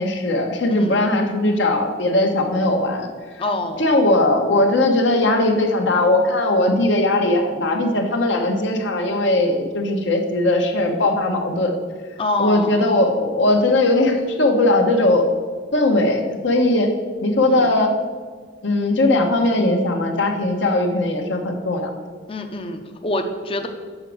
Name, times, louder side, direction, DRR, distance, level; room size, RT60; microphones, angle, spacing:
voice 1, 0.0-3.1 3.8-11.8 12.4-15.3 15.7-16.9 17.2-17.9 18.6-21.9, left 2 dB, 70° left, 3 dB, 1.1 m, -19 dB
voice 2, 0.7-1.1 3.4-3.9 12.2-12.8 17.4-17.7 22.3-23.7, left 2 dB, 30° left, 6 dB, 0.6 m, -26 dB
6.4 x 5.2 x 6.1 m, 1.5 s
head